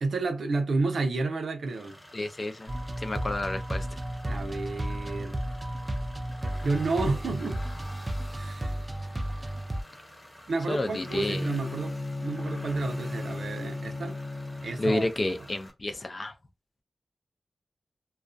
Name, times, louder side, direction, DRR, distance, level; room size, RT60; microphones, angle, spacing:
voice 1, 0.0-2.0 4.3-5.4 6.6-7.6 8.3-8.8 10.5-14.2 14.6-15.4, right 3 dB, 85° right, 0.6 m, -30 dB
sound 1, 1.6-15.7, left 1 dB, 15° left, 0.9 m, -49 dB
voice 2, 2.1-3.9 10.7-11.5 14.8-16.3, left 2 dB, 40° left, 0.5 m, -30 dB
sound 2, 2.7-9.8, right 1 dB, 25° right, 0.4 m, -33 dB
Bowed string instrument, 10.9-15.0, left 2 dB, 60° left, 0.8 m, -35 dB
2.4 x 2.2 x 2.5 m
wide cardioid pair, 85°, 0 cm